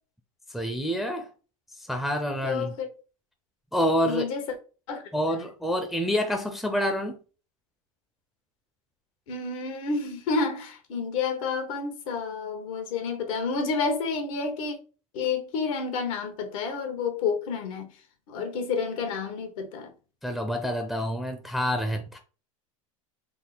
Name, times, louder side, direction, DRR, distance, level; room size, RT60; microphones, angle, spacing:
voice 1, 0.5-1.3 1.9-2.7 3.7-4.3 5.1-7.2 20.2-22.2, equal, ahead, 0.5 m, -27 dB
voice 2, 2.4-2.9 4.0-4.4 4.9-5.0 9.3-14.8 15.1-17.9 18.3-19.9, left 4 dB, 75° left, 1.1 m, -29 dB
3.6 x 2.0 x 4.0 m
hypercardioid pair, 105°, 17 cm